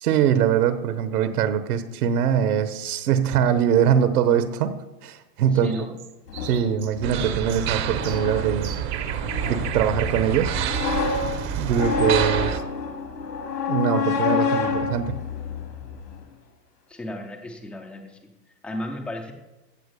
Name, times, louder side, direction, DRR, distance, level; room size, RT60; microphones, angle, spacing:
voice 1, 0.0-5.8 6.4-8.7 9.4-10.5 11.6-12.6 13.7-15.2, right 8 dB, 65° right, 12 dB, 1.2 m, -22 dB
voice 2, 5.5-5.9 16.9-18.3 18.6-19.3, left 1 dB, 5° left, 3 dB, 0.4 m, -34 dB
sound 1, 5.5-12.1, right 10 dB, 85° right, 1.4 m, -39 dB
sound 2, 6.3-16.2, left 5 dB, 85° left, 2.9 m, -28 dB
sound 3, 7.0-12.6, right 11 dB, 25° right, 0.7 m, -28 dB
15.5 x 6.1 x 6.8 m, 1.1 s
hypercardioid pair, 135°, 48 cm